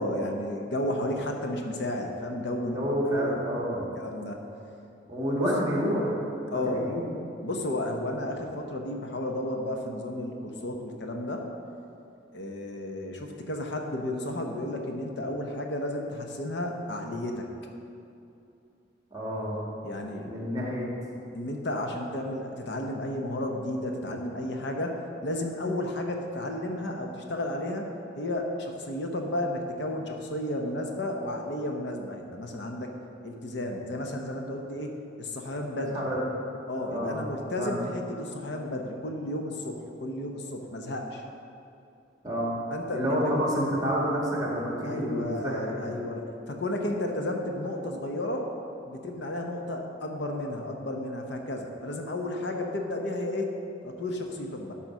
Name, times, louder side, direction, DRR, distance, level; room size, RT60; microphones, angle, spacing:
voice 1, 0.0-2.8 3.1-3.3 4.0-4.4 5.4-5.5 6.5-6.9 7.4-11.5 12.3-17.5 19.8-20.3 21.3-25.0 25.2-27.8 28.2-32.9 33.2-36.1 36.7-41.2 42.7-43.2 44.8-48.5 48.8-53.5 53.8-54.7, left 1 dB, 65° left, 2 dB, 0.9 m, -32 dB
voice 2, 2.6-3.9 5.1-6.2 6.5-7.0 19.1-19.6 20.2-20.9 35.9-36.2 36.9-37.2 37.5-37.8 42.2-42.6 42.9-45.9, equal, 20° right, -3 dB, 1.9 m, -29 dB
11.5 x 4.2 x 6.1 m, 2.7 s
head